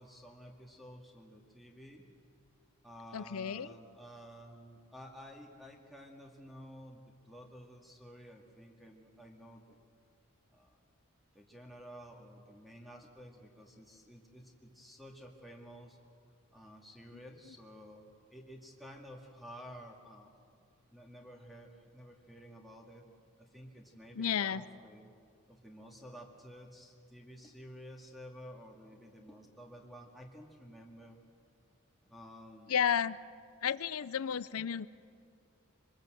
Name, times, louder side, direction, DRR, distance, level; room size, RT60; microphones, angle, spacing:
voice 1, 0.0-2.0 2.8-9.8 10.5-10.8 11.3-16.0 16.5-20.4 20.9-23.0 23.4-25.1 25.5-31.2 32.0-32.8, equal, ahead, 1 dB, 2.1 m, -52 dB
voice 2, 3.1-3.7 24.2-24.6 32.7-33.2 33.6-34.9, left 8 dB, 90° left, 16 dB, 0.5 m, -32 dB
25.0 x 21.0 x 7.9 m, 2.3 s
head